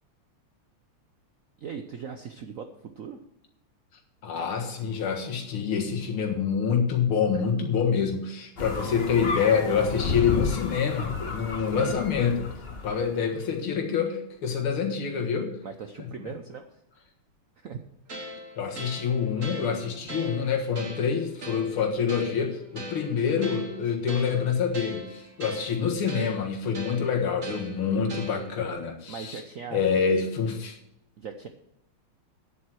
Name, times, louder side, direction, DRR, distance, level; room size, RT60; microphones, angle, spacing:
voice 1, 1.6-2.7 3.0-3.2 8.9-9.0 11.7-11.9 15.6-16.8 17.6-17.8 28.0-28.2 29.1-29.8 31.2-31.5, right 6 dB, 75° right, 7 dB, 0.7 m, -39 dB
voice 2, 4.2-12.5 12.8-15.6 16.0-16.1 18.6-29.4 29.7-30.8, left 6 dB, 80° left, 2 dB, 2.4 m, -26 dB
sound 1, 8.6-13.1, left 4 dB, 35° left, 1.1 m, -32 dB
sound 2, 18.1-28.7, equal, 40° right, 1.9 m, -41 dB
9.9 x 7.6 x 6.2 m, 0.82 s
omnidirectional pair, 2.3 m